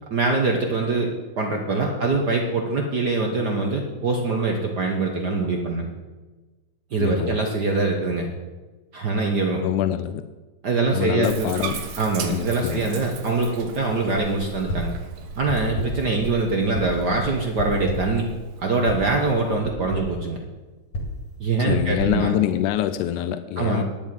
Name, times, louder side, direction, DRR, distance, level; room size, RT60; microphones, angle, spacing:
voice 1, 0.1-1.1 1.4-5.9 6.9-8.3 8.9-9.6 10.6-11.5 12.0-15.0 15.4-18.2 18.6-20.4 21.4-22.3 23.6-23.8, right 3 dB, 60° right, 2 dB, 1.0 m, -23 dB
voice 2, 7.0-7.4 9.6-10.2 10.9-11.8 12.3-12.8 21.7-23.8, left 12 dB, 90° left, 11 dB, 2.1 m, -25 dB
Bathtub (filling or washing), 11.2-19.6, right 5 dB, 80° right, 2.5 m, -38 dB
sound 1, 14.7-15.1 15.5-16.1 16.7-17.1 17.6-18.2 18.9-19.1 19.6-20.2 20.9-23.0, left 1 dB, 65° left, 3.5 m, -31 dB
10.5 x 7.2 x 9.0 m, 1.2 s
omnidirectional pair, 3.4 m